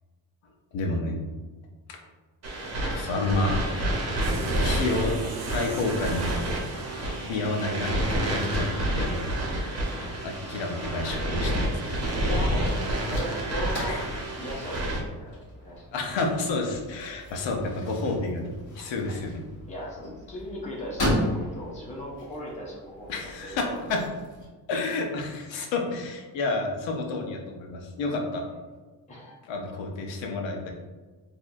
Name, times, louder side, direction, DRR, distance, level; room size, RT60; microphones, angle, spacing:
voice 1, 0.7-1.2 1.9-2.0 2.9-3.5 4.4-5.2 5.5-6.3 7.3-9.3 10.2-12.3 13.8-14.0 15.9-19.4 23.1-23.6 23.9-24.0 24.7-28.4 29.5-30.7, left 2 dB, 85° left, 2 dB, 0.8 m, -30 dB
sound 1, 2.4-15.0, right 1 dB, 35° right, 0.9 m, -29 dB
sound 2, 4.2-10.8, right 5 dB, 70° right, 0.5 m, -43 dB
voice 2, 9.9-10.2 12.2-12.7 13.0-14.0 14.4-15.8 19.7-23.5 29.1-29.4, equal, 15° left, -4 dB, 0.7 m, -37 dB
sound 3, 12.1-24.5, equal, 45° left, 1.4 m, -36 dB
4.3 x 2.7 x 2.6 m, 1.3 s
cardioid pair, 150°, 44 cm